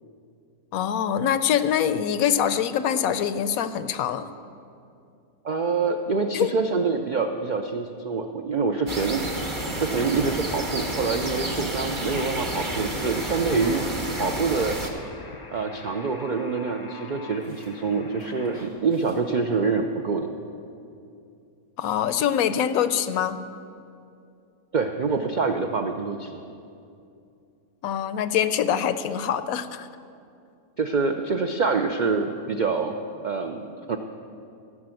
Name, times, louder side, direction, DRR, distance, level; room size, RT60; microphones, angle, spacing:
voice 1, 0.7-4.3 6.3-6.5 21.8-23.4 27.8-29.9, left 9 dB, 75° left, 12 dB, 1.0 m, -24 dB
voice 2, 5.4-9.3 9.8-13.8 14.2-14.8 15.5-20.3 24.7-26.4 30.8-32.9 33.2-34.0, right 4 dB, 75° right, 5 dB, 0.4 m, -26 dB
sound 1, 8.9-14.9, right 1 dB, 25° right, 0.9 m, -30 dB
sound 2, 9.7-10.1 10.4-10.7 11.0-11.6 11.8-12.7 13.0-13.7 14.1-15.5 15.8-16.5 16.8-16.9 17.4-17.8 18.2-19.2, right 1 dB, 60° right, 2.6 m, -53 dB
Alarm, 12.9-18.7, left 3 dB, 40° left, 0.3 m, -45 dB
14.5 x 6.0 x 7.6 m, 2.6 s
omnidirectional pair, 1.5 m